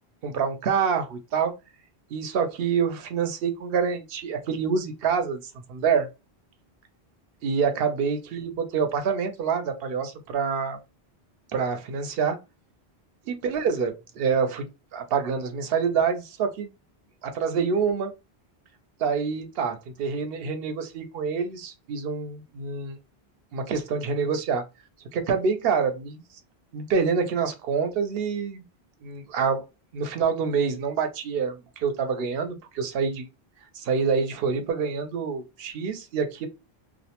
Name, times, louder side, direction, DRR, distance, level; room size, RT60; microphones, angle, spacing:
voice 1, 0.2-1.5 2.1-5.4 5.7-6.1 7.4-10.8 11.5-12.4 13.3-14.7 14.9-16.7 17.2-18.1 19.0-23.0 23.5-24.6 25.1-26.2 26.7-28.6 29.0-29.6 29.9-33.3 33.7-36.5, right 6 dB, 70° right, 0.8 m, -26 dB
2.4 x 2.1 x 2.8 m
omnidirectional pair, 1.1 m